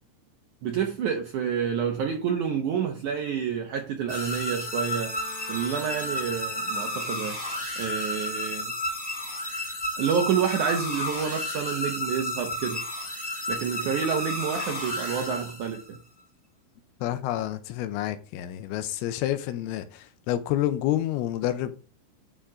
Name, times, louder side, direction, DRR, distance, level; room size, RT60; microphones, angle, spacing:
voice 1, 0.6-5.1 5.5-7.4 7.8-8.7 10.0-12.8 13.5-16.0, right 7 dB, 80° right, 1.8 m, -28 dB
sound 1, 4.1-16.0, left 1 dB, 15° left, 1.6 m, -32 dB
Bowed string instrument, 4.4-7.6, left 1 dB, 50° right, 4.1 m, -45 dB
voice 2, 17.0-21.9, left 13 dB, 85° left, 2.7 m, -29 dB
11.5 x 3.8 x 4.9 m
omnidirectional pair, 4.6 m